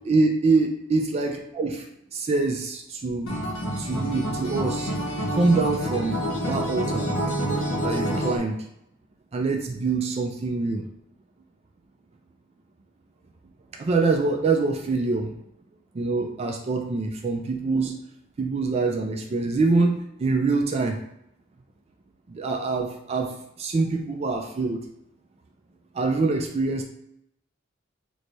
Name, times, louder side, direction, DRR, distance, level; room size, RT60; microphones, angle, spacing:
voice 1, 0.0-1.9 2.1-3.3 3.8-4.9 5.3-7.1 7.8-8.6 9.3-10.8 13.7-15.4 15.9-17.9 18.4-19.9 20.2-21.0 22.3-23.3 23.6-24.8 25.9-26.8, right 3 dB, 30° right, 3 dB, 0.3 m, -25 dB
Acoustic guitar, 3.3-8.4, equal, 90° left, 0.8 m, -27 dB
3.1 x 2.1 x 3.9 m, 0.78 s
head